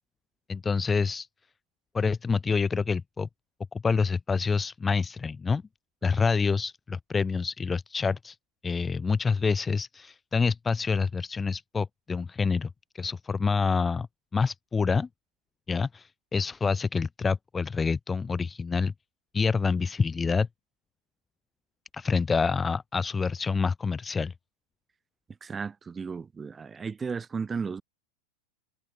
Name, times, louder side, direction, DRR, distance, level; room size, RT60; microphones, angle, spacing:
voice 1, 0.5-1.3 1.9-3.3 3.8-5.6 6.0-8.4 8.6-12.7 12.9-14.1 14.3-15.1 15.7-18.9 19.3-20.5 21.9-24.3, left 5 dB, 15° left, 0.4 m, -27 dB
voice 2, 25.4-27.8, right 5 dB, 15° right, 1.4 m, -34 dB
figure-of-eight pair, 90°, 0 cm